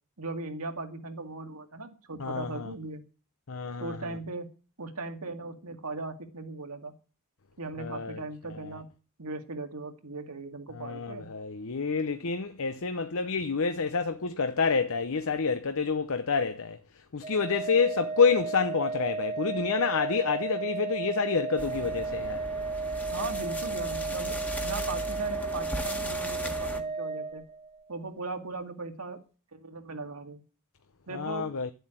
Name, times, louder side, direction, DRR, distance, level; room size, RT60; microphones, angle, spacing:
voice 1, 0.2-3.0 3.8-4.5 4.8-6.9 7.6-8.9 9.2-11.3 23.1-27.4 27.9-29.2 29.5-30.4 31.1-31.5, right 3 dB, 75° right, 2.1 m, -38 dB
voice 2, 2.2-2.7 3.5-4.0 7.8-8.2 10.7-16.8 17.1-22.4 31.1-31.7, left 5 dB, 65° left, 0.8 m, -28 dB
Organ, 17.2-27.9, right 4 dB, 30° right, 1.2 m, -34 dB
sound 1, 21.6-26.8, equal, 5° left, 1.6 m, -38 dB
12.0 x 8.0 x 9.0 m
head